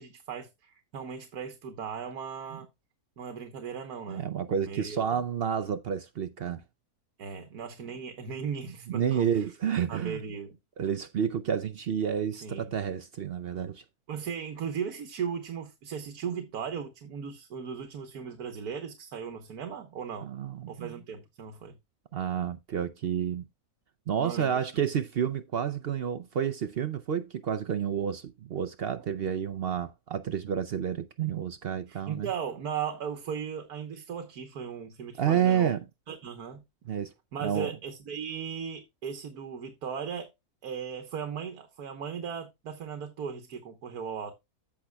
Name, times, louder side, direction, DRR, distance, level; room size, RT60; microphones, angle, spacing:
voice 1, 0.0-2.7 3.2-4.3 4.6-5.0 7.2-9.4 9.9-10.6 12.4-12.7 14.1-20.3 20.7-21.7 24.2-24.6 31.9-35.7 36.1-36.6 37.3-40.3 40.6-44.3, right 7 dB, 85° right, 1.6 m, -37 dB
voice 2, 4.1-6.6 8.9-10.2 10.8-13.8 20.2-21.0 22.1-23.4 24.1-32.3 35.2-35.8 36.8-37.1 37.4-37.7, right 8 dB, 60° right, 0.6 m, -30 dB
14.5 x 5.8 x 2.3 m
omnidirectional pair, 1.6 m